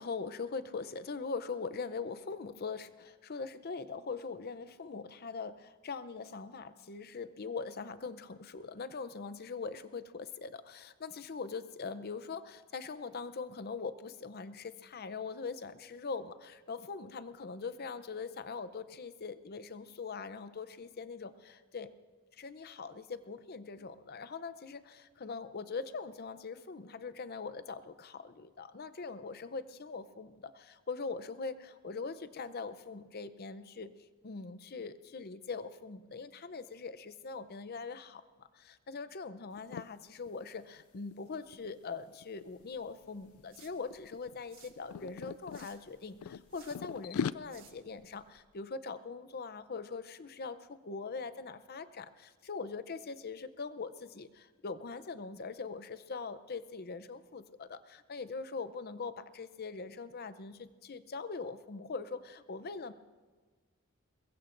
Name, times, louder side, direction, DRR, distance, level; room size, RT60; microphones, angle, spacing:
voice 1, 0.0-21.9 22.4-33.9 34.2-38.2 38.5-62.9, left 4 dB, 45° left, 13 dB, 0.6 m, -42 dB
sound 1, 39.6-39.9 40.3-40.5 40.8-42.7 43.3-43.6 43.9-45.7 46.2-47.3, left 7 dB, 85° left, 0.3 m, -39 dB
sound 2, 42.5-48.4, right 7 dB, 65° right, 1.4 m, -63 dB
23.0 x 21.0 x 2.6 m, 1.4 s
head